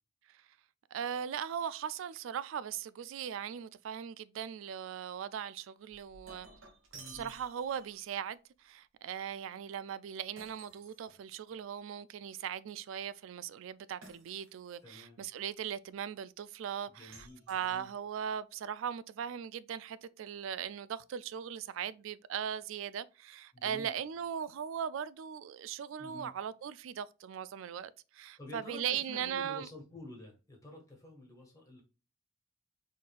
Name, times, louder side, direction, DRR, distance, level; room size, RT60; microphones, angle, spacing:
voice 1, 0.9-6.5 7.1-29.7, right 8 dB, 70° right, 0.3 m, -39 dB
Shatter, 5.9-8.1 10.4-11.6 14.0-14.8 17.1-18.2, right 3 dB, 85° right, 1.2 m, -55 dB
voice 2, 6.9-7.3 14.8-15.2 16.9-17.9 23.5-23.9 26.0-26.3 28.4-31.8, left 2 dB, 15° left, 1.6 m, -50 dB
4.2 x 3.9 x 2.4 m
head